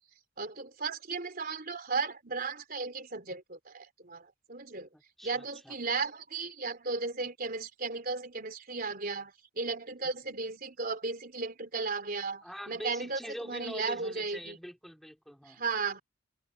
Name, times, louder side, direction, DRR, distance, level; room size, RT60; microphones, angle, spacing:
voice 1, 0.4-4.9 5.2-14.6 15.5-16.0, right 4 dB, 45° right, 3.8 m, -35 dB
voice 2, 4.9-5.7 12.4-15.6, equal, ahead, 2.3 m, -44 dB
head